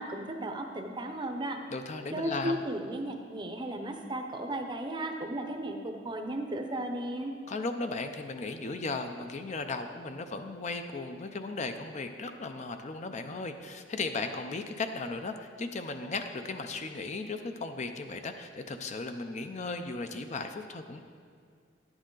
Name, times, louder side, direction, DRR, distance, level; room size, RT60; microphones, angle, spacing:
voice 1, 0.0-1.6 2.1-7.3, right 1 dB, 25° right, 4 dB, 0.6 m, -35 dB
voice 2, 1.7-2.6 7.5-21.0, left 3 dB, 35° left, 7 dB, 0.5 m, -36 dB
10.5 x 8.8 x 3.8 m, 2.1 s
head